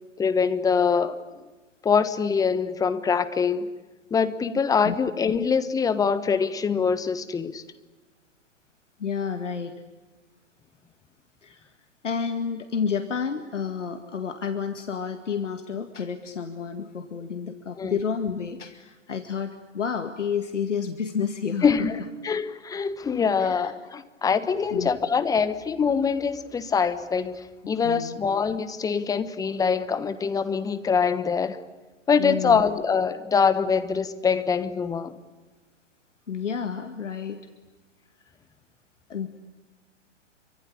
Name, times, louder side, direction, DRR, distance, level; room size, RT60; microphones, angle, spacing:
voice 1, 0.2-1.2 1.8-3.7 4.1-7.6 17.8-18.0 21.6-31.6 32.1-35.1, left 6 dB, 10° left, 1.3 m, -24 dB
voice 2, 9.0-9.7 11.4-11.7 12.0-21.7 23.4-23.7 24.7-24.9 27.8-28.2 32.2-32.6 36.3-37.4 39.1-39.3, left 6 dB, 70° left, 2.1 m, -30 dB
27.0 x 25.0 x 8.5 m
figure-of-eight pair, 120°, 37 cm